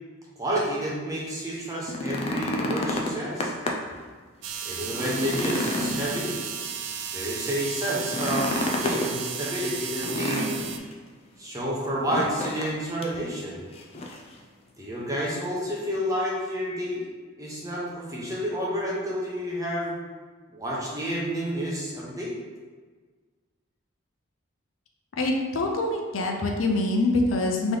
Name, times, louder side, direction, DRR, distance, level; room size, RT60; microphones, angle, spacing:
voice 1, 0.4-3.5 4.6-6.3 7.1-10.5 11.4-13.6 14.8-17.1 17.4-20.0 20.5-22.3, equal, 15° right, -5 dB, 0.8 m, -30 dB
sound 1, 1.7-4.0 4.4-4.5 4.9-6.8 8.0-9.1 10.0-10.9 12.1-12.7 13.0-13.2 13.7-14.3 15.4-15.5, left 1 dB, 30° left, 0.4 m, -30 dB
sound 2, 4.4-10.8, right 7 dB, 70° right, 0.4 m, -34 dB
voice 2, 25.2-27.8, left 2 dB, 90° left, 2 dB, 0.6 m, -25 dB
3.4 x 3.0 x 3.8 m, 1.4 s
head